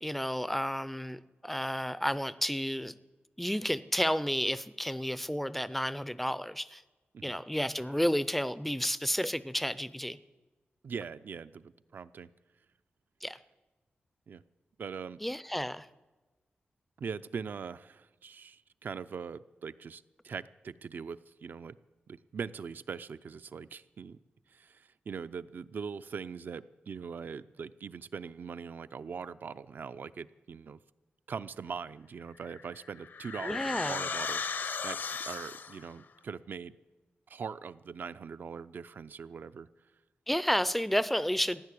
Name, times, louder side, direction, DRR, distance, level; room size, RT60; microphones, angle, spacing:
voice 1, 0.0-2.9 3.4-6.8 7.2-10.2 13.2-13.4 15.2-15.9 33.4-34.0 40.3-41.6, equal, 5° left, 16 dB, 0.4 m, -31 dB
voice 2, 10.8-12.3 14.3-14.4 14.8-15.2 17.0-21.7 22.1-24.2 24.5-30.8 31.3-35.0 35.3-36.8 37.3-39.7, right 6 dB, 60° right, 13 dB, 0.5 m, -41 dB
sound 1, 32.5-35.9, left 5 dB, 65° left, 0.8 m, -36 dB
15.5 x 10.5 x 8.4 m, 1.2 s
wide cardioid pair, 165°, 4 cm